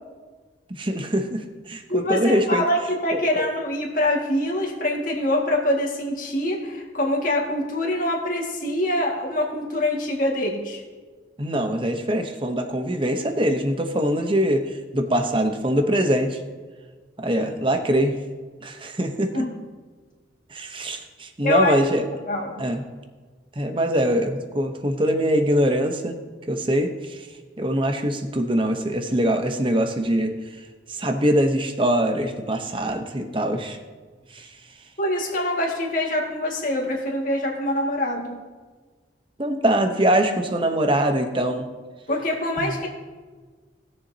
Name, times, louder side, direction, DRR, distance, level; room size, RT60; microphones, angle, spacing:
voice 1, 0.7-2.6 3.1-3.5 11.4-16.4 17.2-18.1 18.6-19.4 20.5-22.1 22.6-22.8 23.6-26.2 26.5-27.3 27.6-30.3 30.9-33.8 34.3-34.5 39.4-41.7 42.6-42.7, right 1 dB, 25° right, 6 dB, 0.8 m, -23 dB
voice 2, 1.9-10.8 19.3-19.6 21.4-21.8 22.3-22.6 35.0-38.4 42.1-42.9, left 1 dB, 45° left, -1 dB, 2.0 m, -24 dB
19.5 x 7.0 x 2.8 m, 1.4 s
head